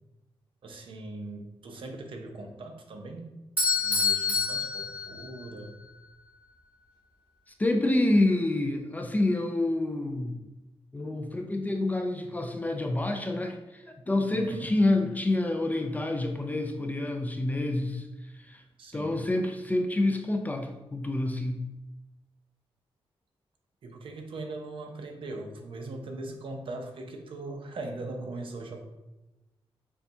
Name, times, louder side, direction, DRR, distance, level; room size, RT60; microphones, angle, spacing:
voice 1, 0.6-3.3 3.6-5.8 14.3-14.7 18.8-19.1 23.8-28.8, right 2 dB, 60° right, 4 dB, 0.6 m, -40 dB
Bell / Doorbell, 3.6-5.7, left 4 dB, 15° right, 1.3 m, -27 dB
voice 2, 7.6-10.4 10.9-18.6 18.9-21.6, left 2 dB, 15° left, 3 dB, 0.3 m, -28 dB
6.8 x 2.3 x 2.7 m, 1.0 s
wide cardioid pair, 130°, 10 cm